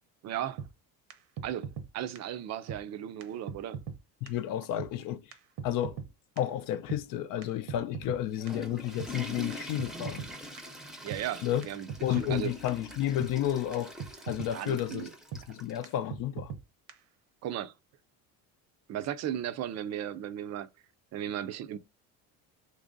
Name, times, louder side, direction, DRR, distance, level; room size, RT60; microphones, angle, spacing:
voice 1, 0.2-0.6 1.4-3.8 11.0-12.5 14.5-15.1 17.4-17.7 18.9-20.7 21.1-21.8, right 11 dB, 45° right, 0.5 m, -36 dB
sound 1, 0.6-0.7 1.1-1.2 1.4-1.9 2.2-2.3 2.7-2.8 3.2-3.3 3.5-4.0 4.3-4.4 4.8-4.9 5.3-5.4 5.6-6.1 6.4-6.5 6.9-7.0 7.4-8.2 8.5-8.6 9.0-9.1 9.5-9.6 9.8-10.3 10.6-10.7 11.1-11.2 11.6-11.7 11.9-12.4 12.7-12.8 13.2-13.3 13.7-13.8 14.0-14.5 14.8-14.9 15.3-15.4 15.8-15.9 16.1-16.6 16.9-17.0, right 7 dB, 75° right, 0.9 m, -39 dB
voice 2, 4.2-5.3 5.6-6.0 6.4-10.3 11.4-11.7 12.0-13.9 14.3-16.5, left 12 dB, 55° left, 0.6 m, -31 dB
Water / Toilet flush, 8.1-15.9, left 1 dB, ahead, 0.6 m, -44 dB
3.0 x 2.6 x 3.7 m
cardioid pair, 110°, 39 cm